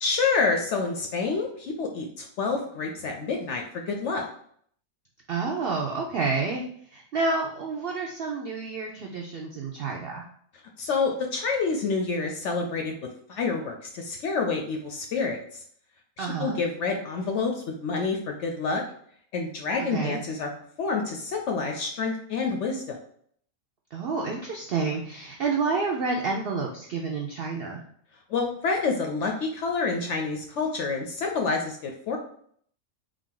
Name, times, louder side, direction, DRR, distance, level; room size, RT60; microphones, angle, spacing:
voice 1, 0.0-4.3 10.8-12.9 13.3-15.4 16.2-17.5 17.8-18.8 19.3-20.5 20.8-23.0 28.3-32.2, left 4 dB, 65° left, 2 dB, 0.7 m, -28 dB
voice 2, 5.3-6.6 6.9-10.3 16.2-16.6 19.9-20.2 23.9-27.8, right 4 dB, 75° right, 0 dB, 0.5 m, -29 dB
3.4 x 2.5 x 3.7 m, 0.62 s
omnidirectional pair, 1.6 m